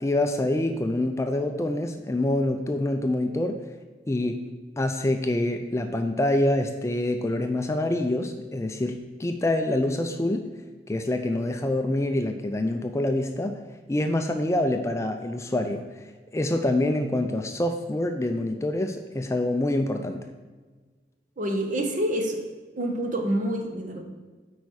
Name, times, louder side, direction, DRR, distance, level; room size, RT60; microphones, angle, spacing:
voice 1, 0.0-3.6 4.1-4.4 4.8-10.4 10.9-13.6 13.9-15.8 16.3-20.2, left 1 dB, 15° left, 6 dB, 0.4 m, -26 dB
voice 2, 21.4-22.4 22.8-24.0, right 1 dB, 45° right, 3 dB, 1.0 m, -27 dB
8.2 x 4.8 x 4.7 m, 1.4 s
head